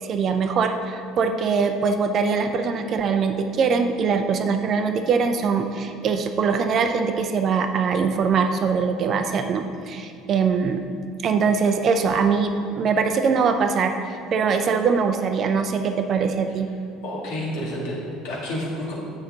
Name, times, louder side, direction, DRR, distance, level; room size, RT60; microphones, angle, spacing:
voice 1, 0.0-10.8 11.2-13.9 14.3-16.7, right 5 dB, 45° right, 7 dB, 0.5 m, -22 dB
voice 2, 17.0-18.9, left 1 dB, 60° left, -4 dB, 1.9 m, -30 dB
8.1 x 6.5 x 3.9 m, 2.3 s
figure-of-eight pair, 60°, 0 cm